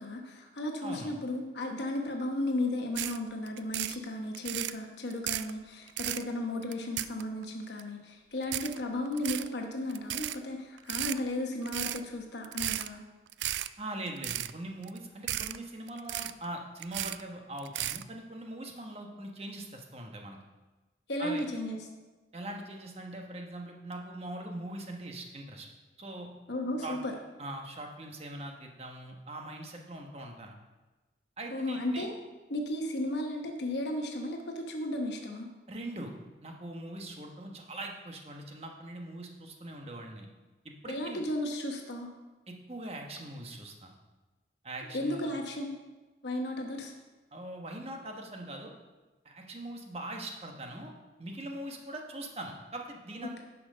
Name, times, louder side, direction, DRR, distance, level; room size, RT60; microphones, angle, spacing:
voice 1, 0.0-13.0 21.1-21.8 26.5-27.1 31.5-32.1 32.5-35.5 40.9-42.1 44.9-45.8 46.2-46.9, left 1 dB, 70° left, 2 dB, 1.1 m, -34 dB
voice 2, 0.8-1.1 13.8-20.4 21.2-21.4 22.3-25.7 26.0-26.3 26.8-27.0 27.4-30.5 31.4-32.1 35.7-36.1 36.4-40.3 40.6-41.2 42.5-43.9 44.6-45.3 47.3-48.7 49.2-50.9 51.2-53.4, right 1 dB, 35° right, 2 dB, 1.2 m, -41 dB
sound 1, 2.9-3.2 3.5-4.0 4.3-4.7 5.1-5.5 5.9-6.2 6.6-7.4 7.8-7.9 8.4-8.8 9.1-9.5 9.9-10.4 10.8-11.2 11.6-12.0 12.4-12.9 13.3-13.7 14.1-14.5 14.8-15.0 15.3-15.6 15.9-16.4 16.8-17.2 17.6-18.0, right 14 dB, 75° right, 0.3 m, -34 dB
10.5 x 5.8 x 5.5 m, 1.2 s
head